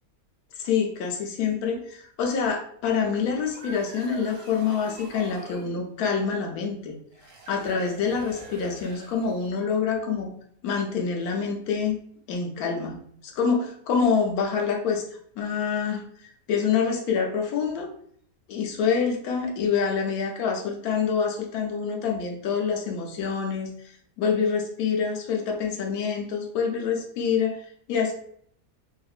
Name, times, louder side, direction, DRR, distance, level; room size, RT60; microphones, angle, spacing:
voice 1, 0.6-6.9 7.5-10.3 10.6-12.0 12.3-13.0 13.2-15.0 15.4-16.0 16.5-17.9 18.5-23.7 24.2-28.1, left 6 dB, 75° left, 2 dB, 1.1 m, -26 dB
sound 1, 3.3-5.7 7.1-9.6, right 2 dB, 80° right, 1.2 m, -45 dB
3.6 x 2.5 x 2.3 m, 0.62 s
omnidirectional pair, 1.6 m